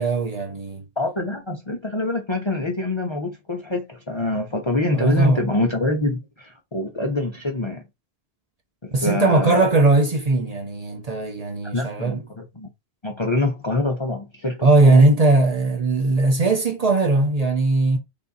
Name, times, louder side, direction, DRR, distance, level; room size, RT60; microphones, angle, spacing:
voice 1, 0.0-0.8 4.9-5.4 8.9-12.2 14.6-18.0, right 2 dB, 40° right, 0.8 m, -19 dB
voice 2, 1.0-7.8 8.8-9.7 11.7-12.7 13.0-15.0, left 2 dB, 35° left, 0.6 m, -25 dB
3.5 x 2.8 x 3.9 m
omnidirectional pair, 1.1 m